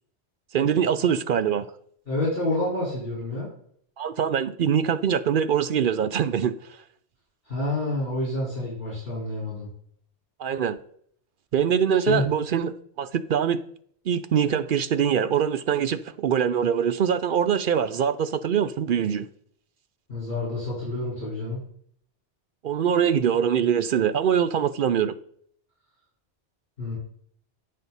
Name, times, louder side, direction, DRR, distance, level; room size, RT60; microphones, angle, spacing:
voice 1, 0.5-1.7 4.0-6.6 10.4-10.8 11.5-13.6 14.1-19.3 22.6-25.2, right 8 dB, 60° right, 0.6 m, -23 dB
voice 2, 2.1-3.5 7.4-9.7 11.9-12.3 20.1-21.6 26.8-27.0, left 2 dB, 55° left, 4.8 m, -28 dB
9.9 x 6.5 x 4.1 m
omnidirectional pair, 1.1 m